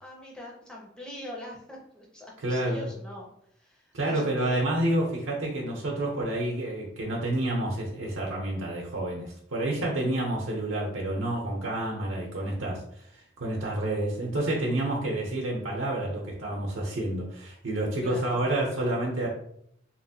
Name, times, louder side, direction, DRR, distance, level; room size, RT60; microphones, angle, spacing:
voice 1, 0.0-3.3 3.5-4.7 18.0-18.4, left 1 dB, 5° left, -3 dB, 0.5 m, -42 dB
voice 2, 2.4-2.9 3.9-19.3, right 1 dB, 80° right, -3 dB, 0.6 m, -29 dB
2.9 x 2.4 x 2.7 m, 0.70 s
head